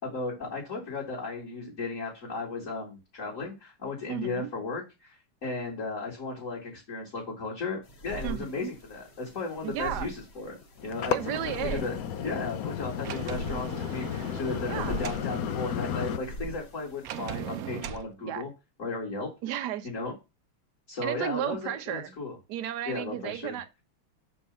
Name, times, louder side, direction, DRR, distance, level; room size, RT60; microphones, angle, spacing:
voice 1, 0.0-18.5 18.8-19.3 19.8-20.1 20.9-22.4 22.9-23.6, left 3 dB, 35° left, 2.5 m, -35 dB
voice 2, 4.1-4.5 8.2-8.7 9.6-10.1 11.1-11.8 14.7-15.0 18.2-18.5 19.4-19.9 21.0-22.1 22.5-23.8, right 11 dB, 60° right, 1.2 m, -34 dB
sound 1, 7.8-17.6, right 1 dB, 50° left, 2.3 m, -43 dB
sound 2, 10.8-16.2, left 9 dB, 75° left, 0.8 m, -33 dB
Sliding door, 13.0-15.3 17.0-18.1, right 11 dB, 90° right, 0.8 m, -39 dB
6.9 x 4.6 x 5.4 m
omnidirectional pair, 2.3 m